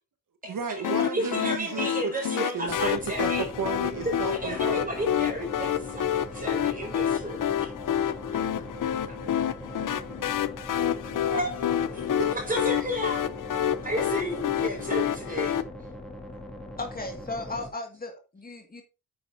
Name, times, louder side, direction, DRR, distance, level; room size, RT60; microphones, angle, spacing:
voice 1, 0.4-4.9 11.2-11.3 12.2-12.4, right 5 dB, 70° right, 1.4 m, -34 dB
sound 1, 0.8-15.6, left 10 dB, 65° left, 0.7 m, -28 dB
voice 2, 1.0-3.5 4.3-7.7 9.1-9.2 11.0-12.0 12.3-13.3 13.6-15.6, right 1 dB, 25° right, 4.9 m, -33 dB
sound 2, 2.7-17.7, left 1 dB, ahead, 2.3 m, -41 dB
voice 3, 16.8-18.8, left 2 dB, 25° left, 2.1 m, -36 dB
9.1 x 8.8 x 2.7 m
cardioid pair, 110°, 34 cm